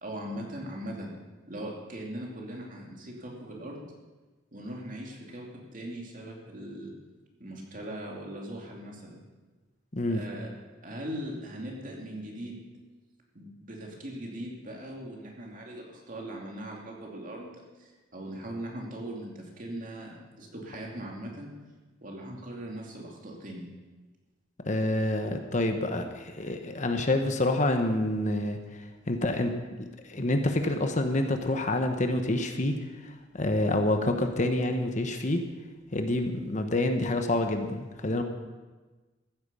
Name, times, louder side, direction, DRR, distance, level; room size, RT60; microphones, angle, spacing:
voice 1, 0.0-1.1 1.5-3.8 4.5-6.9 7.4-9.2 10.1-10.5 10.8-12.6 13.3-21.5 22.0-23.7, right 1 dB, 45° right, -1 dB, 2.7 m, -40 dB
voice 2, 24.7-28.8 29.1-32.7 33.0-35.4 35.9-38.2, left 1 dB, 40° left, 6 dB, 1.0 m, -27 dB
14.5 x 9.5 x 6.9 m, 1.2 s
head